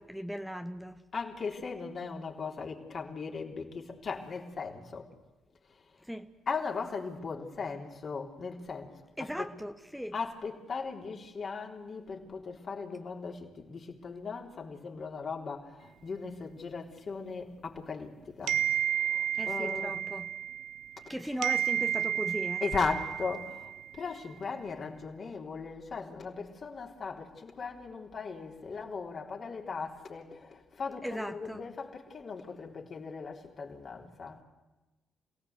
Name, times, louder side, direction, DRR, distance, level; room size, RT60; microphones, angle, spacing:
voice 1, 0.0-1.0 6.0-6.3 9.2-10.1 19.3-20.3 21.1-22.6 31.0-31.7, equal, ahead, 1.3 m, -38 dB
voice 2, 1.1-5.1 6.5-9.5 10.1-20.0 21.3-21.5 22.6-34.4, left 4 dB, 50° left, 3.7 m, -38 dB
sound 1, 18.5-21.1 21.4-24.0, right 10 dB, 75° right, 0.8 m, -32 dB
27.5 x 17.5 x 8.2 m
hypercardioid pair, 45°, 0 cm